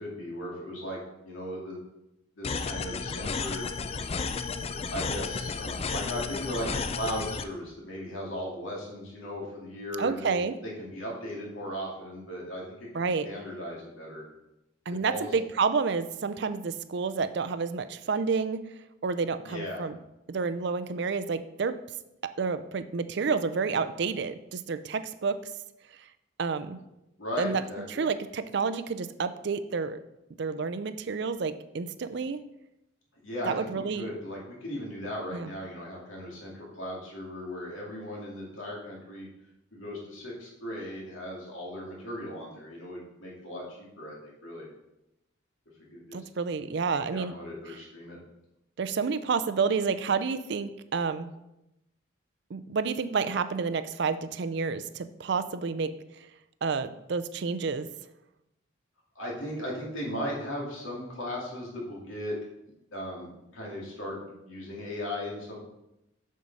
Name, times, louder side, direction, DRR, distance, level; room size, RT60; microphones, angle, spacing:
voice 1, 0.0-1.8 2.4-3.6 4.6-10.4 10.6-14.2 15.0-15.3 19.4-19.9 27.2-28.0 33.2-39.3 39.7-44.7 45.9-46.2 46.9-48.2 59.1-62.4 62.9-65.6, equal, 85° left, -3 dB, 2.5 m, -37 dB
sound 1, 2.4-7.4, left 4 dB, 30° left, 0.3 m, -33 dB
voice 2, 10.0-10.6 12.9-13.3 14.9-18.6 19.0-20.0 20.3-21.8 22.2-25.4 26.4-26.8 27.4-27.6 27.9-30.0 30.4-32.4 33.5-34.1 35.3-35.5 46.1-47.4 47.7-47.8 48.8-51.3 52.5-55.9 56.6-57.9, right 5 dB, 55° right, 12 dB, 0.4 m, -29 dB
6.9 x 6.4 x 4.1 m, 0.90 s
head